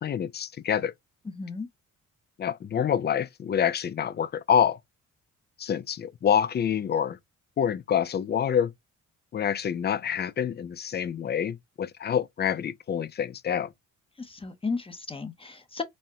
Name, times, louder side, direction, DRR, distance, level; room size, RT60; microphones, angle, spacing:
voice 1, 0.0-0.9 2.4-4.8 5.6-7.2 7.6-8.7 9.3-13.7, left 8 dB, 35° left, 0.4 m, -27 dB
voice 2, 1.4-1.7 14.2-15.8, left 4 dB, 20° left, 0.8 m, -34 dB
4.2 x 2.1 x 3.6 m
cardioid pair, 90°, 30 cm